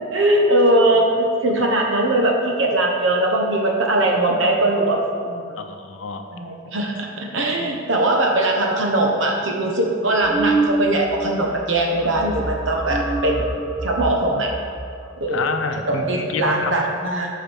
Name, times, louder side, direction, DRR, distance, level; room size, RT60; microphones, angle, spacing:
voice 1, 0.1-5.7 6.3-13.5 13.8-14.5 15.2-15.4 15.9-17.3, right 1 dB, 70° right, 1 dB, 1.1 m, -20 dB
voice 2, 5.6-6.2 15.3-16.8, left 4 dB, 80° left, 6 dB, 0.6 m, -28 dB
sound 1, 10.2-11.2 11.4-11.7 12.0-15.2, right 2 dB, 5° right, 0.7 m, -26 dB
6.6 x 4.8 x 6.3 m, 2.2 s
head